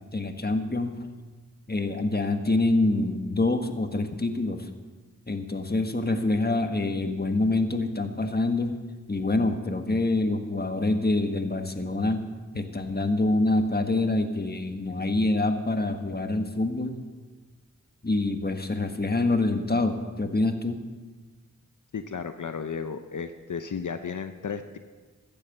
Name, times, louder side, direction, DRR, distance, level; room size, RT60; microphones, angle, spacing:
voice 1, 0.1-1.1 1.7-4.7 5.3-8.8 9.1-17.1 18.0-20.8, left 2 dB, 30° left, 6 dB, 1.5 m, -26 dB
voice 2, 21.9-24.8, left 6 dB, 70° left, 8 dB, 0.7 m, -34 dB
14.5 x 10.0 x 6.6 m, 1.4 s
cardioid pair, 45°, 31 cm